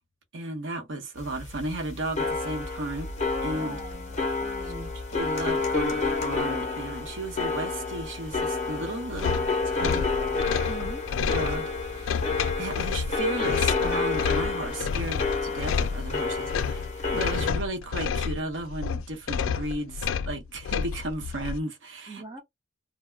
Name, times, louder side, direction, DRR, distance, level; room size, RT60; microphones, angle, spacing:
voice 1, 0.3-3.1 3.4-3.8 4.6-4.7 5.1-9.4 9.6-10.0 11.3-12.3 12.6-22.4, right 2 dB, 75° right, 0.8 m, -34 dB
sound 1, 1.2-17.5, left 4 dB, 35° left, 0.6 m, -30 dB
voice 2, 3.5-5.0 10.7-11.0 16.1-16.2 22.1-22.4, right 3 dB, 20° right, 0.5 m, -42 dB
sound 2, 9.1-21.6, left 6 dB, 90° left, 0.3 m, -30 dB
2.3 x 2.0 x 3.1 m
head